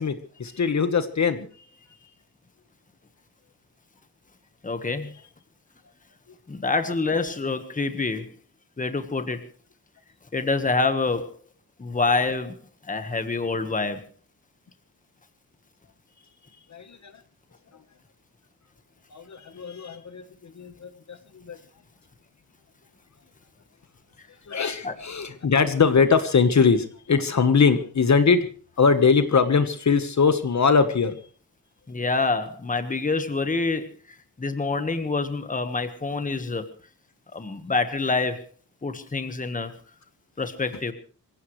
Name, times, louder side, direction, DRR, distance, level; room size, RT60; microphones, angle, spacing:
voice 1, 0.0-1.5 16.7-17.1 19.1-21.2 21.5-21.6 24.5-28.5 28.8-31.2, left 5 dB, 50° left, 9 dB, 1.3 m, -21 dB
voice 2, 4.6-5.1 6.5-8.3 8.8-9.5 10.3-11.4 11.8-12.5 12.9-14.0 24.8-25.0 31.9-36.7 37.3-38.5 38.8-39.7 40.4-40.9, left 3 dB, 20° left, 9 dB, 1.4 m, -26 dB
25.5 x 16.5 x 3.2 m, 0.41 s
wide cardioid pair, 165°, 36 cm